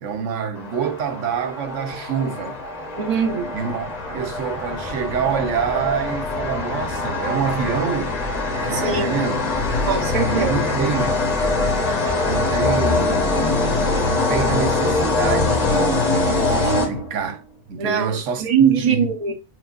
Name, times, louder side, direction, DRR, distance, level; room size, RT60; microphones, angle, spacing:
voice 1, 0.0-2.6 3.5-8.2 8.6-9.5 10.2-11.2 12.2-13.8 14.1-17.4 17.7-19.1, right 6 dB, 85° right, 1.1 m, -26 dB
sound 1, 0.6-17.4, left 3 dB, 35° left, 1.0 m, -23 dB
voice 2, 3.0-3.6 8.7-9.2 9.9-10.6 12.1-12.2 17.8-19.3, right 7 dB, 35° right, 0.8 m, -22 dB
6.1 x 2.5 x 2.5 m
omnidirectional pair, 1.2 m